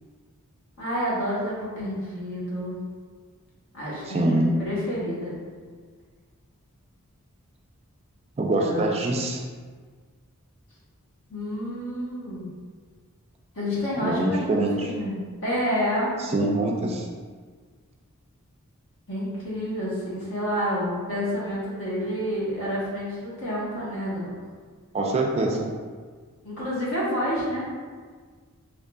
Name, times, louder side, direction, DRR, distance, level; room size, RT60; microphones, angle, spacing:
voice 1, 0.8-2.8 3.7-5.3 8.6-9.0 11.3-12.5 13.5-15.1 15.4-16.1 19.1-24.3 26.4-27.7, equal, 60° left, -7 dB, 1.2 m, -29 dB
voice 2, 4.1-4.5 8.4-9.4 14.0-14.9 16.2-17.1 24.9-25.7, right 2 dB, 30° right, 0 dB, 0.3 m, -24 dB
3.7 x 3.1 x 2.2 m, 1.5 s
head